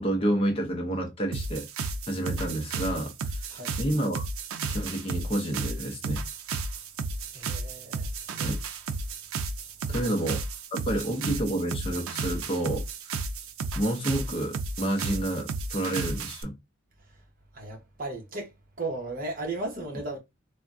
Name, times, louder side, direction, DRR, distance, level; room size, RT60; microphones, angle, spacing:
voice 1, 0.0-3.5 3.8-4.2 4.7-6.2 8.4-8.6 9.9-10.4 10.7-13.2 13.7-16.6, right 1 dB, 25° left, 0.6 m, -29 dB
sound 1, 1.3-16.4, right 4 dB, 85° right, 0.4 m, -33 dB
voice 2, 7.3-8.6 10.0-10.1 17.5-20.2, right 2 dB, 40° right, 0.9 m, -36 dB
3.4 x 2.1 x 2.5 m
head